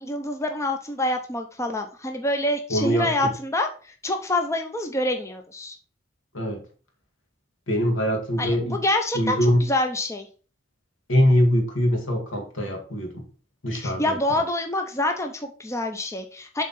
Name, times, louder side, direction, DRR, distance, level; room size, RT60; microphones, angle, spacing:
voice 1, 0.0-3.7 4.0-5.7 8.4-10.3 13.7-16.6, left 1 dB, 15° left, 4 dB, 0.6 m, -26 dB
voice 2, 2.7-3.3 6.3-6.6 7.7-8.8 9.1-9.6 11.1-13.2 13.6-14.2, equal, 85° left, 2 dB, 1.9 m, -23 dB
7.5 x 3.7 x 4.2 m, 0.38 s
head